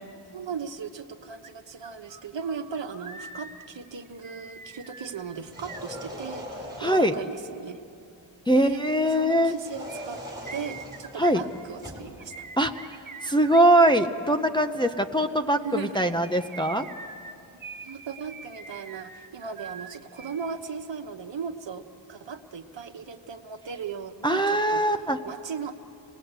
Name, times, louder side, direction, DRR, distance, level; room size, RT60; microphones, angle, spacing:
voice 1, 0.3-7.8 8.5-10.2 10.5-12.4 15.6-16.1 17.8-25.7, right 6 dB, 60° right, 6 dB, 1.2 m, -37 dB
sound 1, 1.4-1.5 1.8-6.6 9.9-14.1 15.9-20.5 20.8-20.9, right 4 dB, 40° right, 1.3 m, -44 dB
sound 2, 5.4-7.3 9.5-12.1, equal, 10° right, 5.0 m, -41 dB
voice 2, 6.8-7.1 8.5-9.5 11.2-11.4 12.6-13.0 13.2-16.9 24.2-25.2, right 1 dB, 10° left, 4 dB, 0.6 m, -22 dB
27.5 x 20.0 x 8.0 m, 2.6 s
wide cardioid pair, 150°, 48 cm